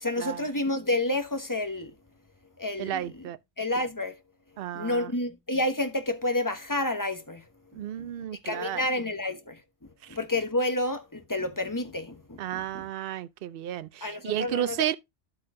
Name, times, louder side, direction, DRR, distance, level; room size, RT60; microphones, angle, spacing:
voice 1, 0.0-1.9 2.6-3.2 3.6-4.1 4.7-7.4 7.7-8.1 8.4-12.8 14.0-15.0, left 1 dB, 15° left, 0.9 m, -30 dB
voice 2, 2.8-3.4 4.6-5.1 7.7-8.8 10.0-10.2 12.4-14.9, right 11 dB, 60° right, 0.7 m, -32 dB
12.0 x 4.2 x 3.7 m
omnidirectional pair, 1.3 m